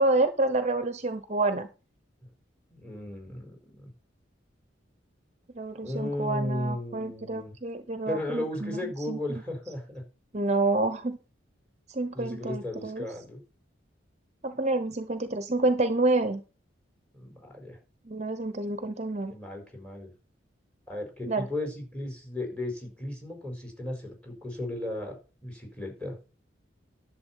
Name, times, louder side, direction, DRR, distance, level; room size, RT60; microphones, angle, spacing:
voice 1, 0.0-1.7 5.5-9.2 10.3-11.2 11.9-13.0 14.4-16.4 18.1-19.3 21.2-21.5, right 2 dB, 35° right, 10 dB, 0.9 m, -28 dB
voice 2, 2.7-3.9 5.8-7.5 8.1-10.0 12.1-13.4 17.1-17.8 19.3-20.1 20.9-26.2, left 1 dB, 5° left, 3 dB, 4.6 m, -35 dB
11.0 x 7.2 x 5.5 m, 0.34 s
head